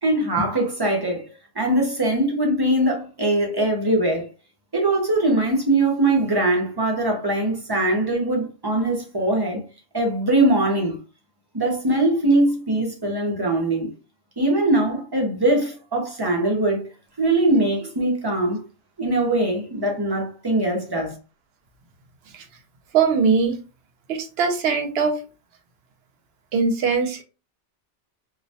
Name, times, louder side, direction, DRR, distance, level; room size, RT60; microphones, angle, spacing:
voice 1, 0.0-4.3 4.7-9.6 9.9-11.0 11.5-13.9 14.4-16.9 17.2-18.6 19.0-21.2, right 1 dB, 35° right, 0.4 m, -21 dB
voice 2, 22.9-23.6 24.1-25.2 26.5-27.2, right 5 dB, 70° right, 0.8 m, -21 dB
2.3 x 2.1 x 2.7 m
omnidirectional pair, 1.2 m